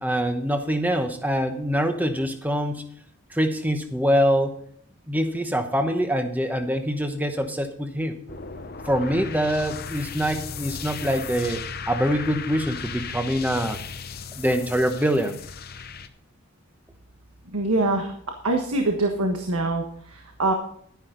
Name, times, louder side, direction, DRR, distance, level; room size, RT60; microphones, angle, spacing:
voice 1, 0.0-2.8 3.3-4.5 5.1-8.1 8.9-11.6 11.9-13.8 14.4-15.4, equal, 5° right, 7 dB, 1.0 m, -24 dB
sound 1, 8.3-16.1, left 5 dB, 45° left, 0.8 m, -36 dB
voice 2, 17.5-18.1 18.4-20.5, right 2 dB, 85° right, 3 dB, 1.4 m, -24 dB
11.0 x 10.5 x 3.9 m, 0.63 s
head